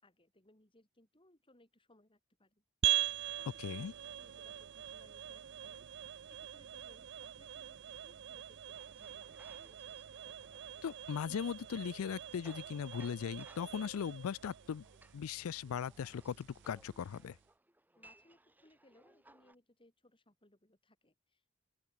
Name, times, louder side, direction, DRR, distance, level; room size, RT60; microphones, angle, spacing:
voice 1, 0.0-2.6 3.1-5.9 6.3-9.7 18.0-21.5, left 1 dB, 25° left, 4.6 m, -67 dB
sound 1, 2.8-17.4, right 12 dB, 55° right, 0.5 m, -42 dB
voice 2, 3.6-3.9 10.8-14.8 15.1-17.4, left 7 dB, 75° left, 0.4 m, -39 dB
sound 2, 3.7-14.0, right 2 dB, 80° right, 2.7 m, -71 dB
sound 3, 8.7-19.5, right 1 dB, 10° right, 2.2 m, -64 dB
open air
head